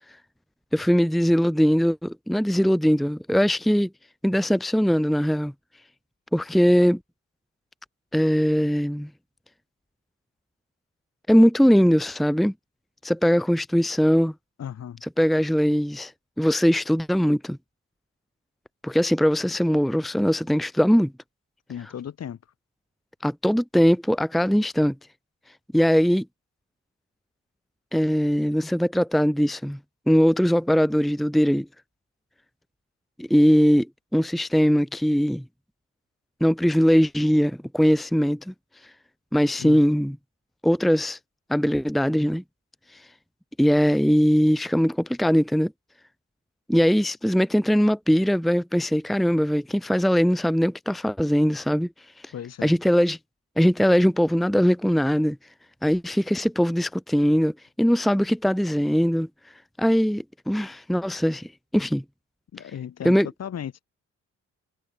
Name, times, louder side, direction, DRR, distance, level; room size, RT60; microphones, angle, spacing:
voice 1, 0.7-3.9 4.2-5.5 6.3-7.0 8.1-9.1 11.3-12.5 13.0-14.3 15.2-16.1 16.4-17.6 18.8-21.1 23.2-24.9 25.7-26.3 27.9-29.8 30.1-31.7 33.2-33.9 34.1-35.4 36.4-38.5 39.3-40.2 40.6-41.2 41.5-42.4 43.6-45.7 46.7-51.9 52.2-52.3 52.6-53.2 53.6-55.4 55.8-59.3 59.8-62.0 63.0-63.3, equal, ahead, 0.9 m, -21 dB
voice 2, 14.6-15.0 21.7-22.4 39.6-39.8 52.3-52.7 62.5-63.8, left 9 dB, 55° left, 2.9 m, -35 dB
cardioid pair, 90°, 30 cm